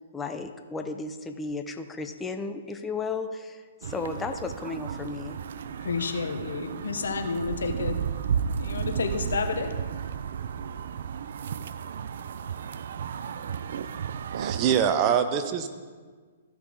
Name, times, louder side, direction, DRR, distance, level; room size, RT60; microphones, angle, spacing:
voice 1, 0.1-5.4, left 4 dB, 15° left, 6 dB, 0.6 m, -34 dB
sound 1, 3.8-14.9, right 7 dB, 65° right, 0.4 m, -33 dB
voice 2, 5.8-8.0 8.6-9.7, left 4 dB, 75° left, 6 dB, 0.9 m, -30 dB
voice 3, 14.4-15.7, right 8 dB, 35° right, 8 dB, 0.8 m, -24 dB
14.5 x 5.9 x 3.8 m, 1.5 s
hypercardioid pair, 125°, 0 cm